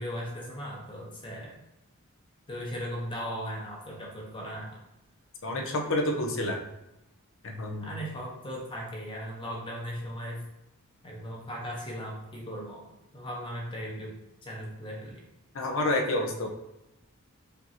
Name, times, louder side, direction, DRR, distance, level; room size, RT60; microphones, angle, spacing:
voice 1, 0.0-1.6 2.5-4.7 7.8-10.4 11.0-12.9 13.1-14.1 14.4-15.2, equal, 20° left, -2 dB, 0.8 m, -37 dB
voice 2, 5.4-6.6 7.4-7.9 15.5-16.5, left 1 dB, 60° left, 2 dB, 0.6 m, -29 dB
5.1 x 2.6 x 2.8 m, 0.92 s
head